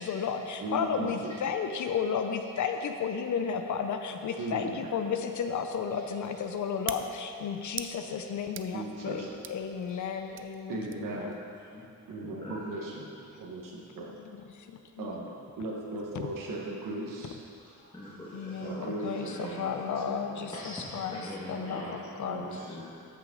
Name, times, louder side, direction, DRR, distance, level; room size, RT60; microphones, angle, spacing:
voice 1, 0.0-11.3 14.5-15.1 18.3-21.2 21.5-22.4, left 6 dB, 65° left, 6 dB, 0.6 m, -33 dB
voice 2, 0.6-1.3 4.4-4.9 8.7-9.3 10.7-11.4 12.1-13.1 13.4-14.1 15.0-17.4 18.6-20.0 20.3-20.5 21.6-22.6, right 2 dB, 80° right, -2 dB, 1.6 m, -38 dB
sound 1, 4.9-11.2, right 8 dB, 40° right, 0.4 m, -46 dB
voice 3, 11.7-12.6 17.6-19.8 20.5-22.0 22.3-23.0, left 1 dB, 15° left, -9 dB, 1.7 m, -44 dB
13.5 x 6.3 x 3.9 m, 2.4 s
cardioid pair, 115°, 32 cm